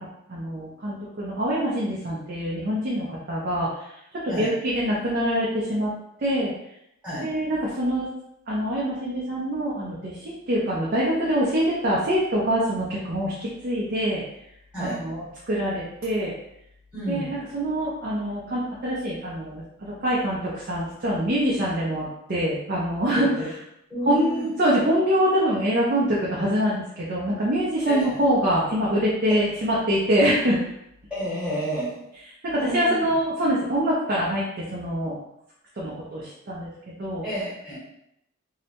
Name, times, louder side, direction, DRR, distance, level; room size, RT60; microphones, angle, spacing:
voice 1, 0.3-3.7 4.2-5.9 6.2-6.5 7.2-8.1 8.5-14.2 14.8-16.3 17.1-23.3 24.1-30.6 32.5-35.2 35.8-36.7 37.0-37.2, equal, 45° right, -6 dB, 0.5 m, -25 dB
voice 2, 16.9-17.4 23.4-23.5 23.9-24.4 27.9-28.2 31.1-32.1 32.6-33.0 37.2-37.8, right 1 dB, 5° right, -10 dB, 1.0 m, -30 dB
2.7 x 2.1 x 2.8 m, 0.79 s
head